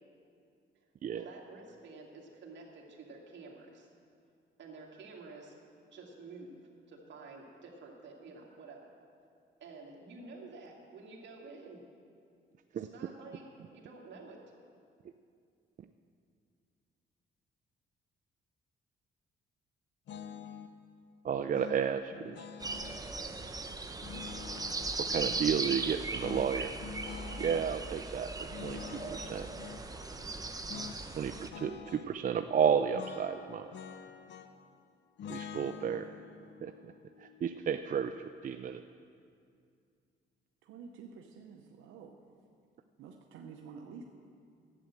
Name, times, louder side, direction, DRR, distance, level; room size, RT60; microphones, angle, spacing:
voice 1, 1.1-3.9 4.6-5.5 5.9-6.6 6.9-8.9 9.6-11.8 12.7-13.4 13.7-14.4, right 3 dB, 65° right, -1 dB, 2.3 m, -50 dB
sound 1, 20.1-20.7 21.5-23.0 24.0-25.4 26.2-27.7 28.5-29.9 30.7-31.0 31.3-32.1 32.9-34.7 35.2-38.3, left 7 dB, 65° left, 0.7 m, -47 dB
voice 2, 21.2-22.5 25.0-26.7 27.4-29.5 31.2-33.7 35.3-36.1 36.6-36.7 37.2-38.1 38.4-38.8, right 7 dB, 40° right, 8 dB, 0.4 m, -32 dB
sound 2, 22.6-31.5, right 3 dB, 20° right, 0.8 m, -38 dB
voice 3, 40.6-42.2 43.0-44.0, right 5 dB, 85° right, 2 dB, 0.8 m, -50 dB
11.0 x 8.5 x 7.5 m, 2.3 s
cardioid pair, 90°, 20 cm